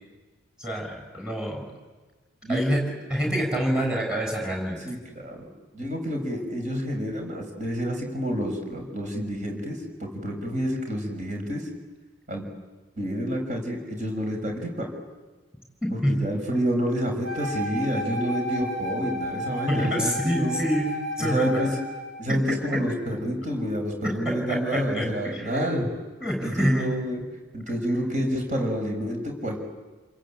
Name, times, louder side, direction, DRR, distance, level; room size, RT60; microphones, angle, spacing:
voice 1, 0.6-1.7 2.5-2.8 3.1-4.8 16.0-16.1 19.7-20.9 21.2-21.7 22.3-22.4 24.0-25.6 26.2-26.9, equal, 5° right, 2 dB, 7.0 m, -27 dB
voice 2, 4.8-5.5 5.7-11.6 12.3-12.4 13.0-14.9 15.9-20.6 21.2-21.7 22.2-25.9 26.4-27.2 27.5-29.6, equal, 35° right, 2 dB, 6.3 m, -28 dB
Wind instrument woodwind instrument, 17.2-22.1, left 1 dB, 60° right, 6.7 m, -32 dB
29.5 x 22.0 x 9.0 m, 1.3 s
head